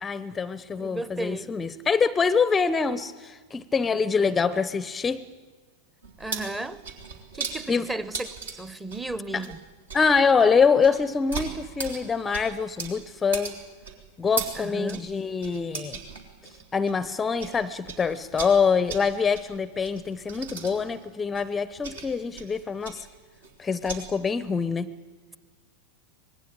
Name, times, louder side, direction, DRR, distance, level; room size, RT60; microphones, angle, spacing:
voice 1, 0.0-5.2 7.7-7.9 9.3-9.5 9.9-13.6 14.2-16.0 16.7-23.1 23.6-24.9, left 5 dB, 15° left, 17 dB, 0.7 m, -25 dB
voice 2, 0.8-1.5 6.2-6.8 7.3-8.3 8.5-9.6 14.5-15.1, right 2 dB, 10° right, 16 dB, 0.9 m, -34 dB
sound 1, 6.0-17.6 17.8-24.0, right 5 dB, 70° right, 3.4 m, -38 dB
25.0 x 19.5 x 8.8 m, 1.4 s
figure-of-eight pair, 90°, 0 cm